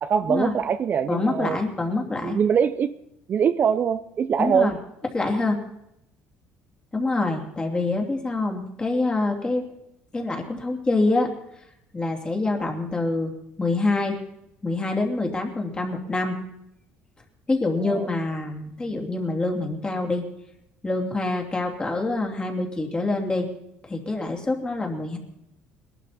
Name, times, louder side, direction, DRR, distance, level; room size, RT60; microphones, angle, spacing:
voice 1, 0.0-1.6 2.2-2.9 3.3-4.7 17.8-18.1, right 7 dB, 40° right, 12 dB, 0.6 m, -23 dB
voice 2, 1.1-2.4 4.4-4.8 5.1-5.6 6.9-9.6 10.1-11.3 11.9-13.3 13.6-14.2 14.6-16.4 17.5-20.2 20.8-23.5 23.9-25.2, left 2 dB, 20° left, 2 dB, 2.7 m, -25 dB
20.5 x 12.0 x 4.2 m, 0.81 s
cardioid pair, 105°, 5 cm